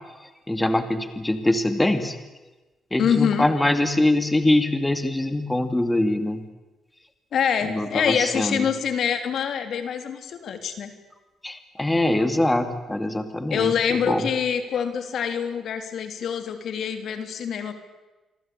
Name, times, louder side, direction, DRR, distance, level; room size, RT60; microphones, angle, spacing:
voice 1, 0.5-2.1 2.9-6.4 7.7-8.6 11.4-13.7 14.1-14.2, left 1 dB, 10° left, 8 dB, 2.5 m, -23 dB
voice 2, 3.0-3.5 7.3-10.9 13.5-17.7, left 7 dB, 65° left, 7 dB, 3.4 m, -25 dB
28.0 x 23.0 x 8.8 m, 1.1 s
cardioid pair, 90°, 0 cm